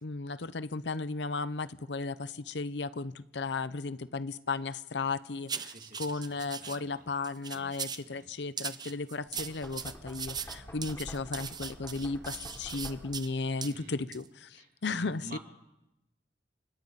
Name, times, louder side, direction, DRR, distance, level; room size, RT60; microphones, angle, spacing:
voice 1, 0.0-15.4, left 3 dB, 75° left, 0.8 m, -35 dB
sound 1, 5.5-6.8 7.2-8.1 8.6-13.3 13.6-13.7 14.1-14.3, right 7 dB, 25° right, 0.7 m, -39 dB
voice 2, 5.6-7.2 7.5-8.4 13.6-14.0 14.5-15.4, right 2 dB, 50° right, 2.7 m, -51 dB
Knock, 9.3-13.4, equal, 15° left, 3.8 m, -48 dB
30.0 x 25.5 x 4.1 m
head